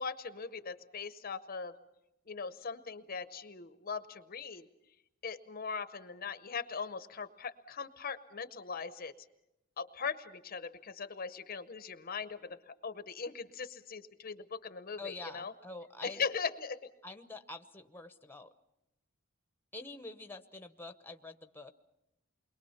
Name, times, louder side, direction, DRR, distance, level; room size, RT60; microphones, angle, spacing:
voice 1, 0.0-1.7 2.3-4.7 5.2-9.1 9.8-12.6 12.8-15.5 16.0-16.9, left 5 dB, 45° left, 12 dB, 0.7 m, -40 dB
voice 2, 15.0-16.2 17.0-18.5 19.7-21.7, left 2 dB, 10° left, 8 dB, 0.9 m, -46 dB
28.5 x 22.0 x 5.7 m, 0.89 s
head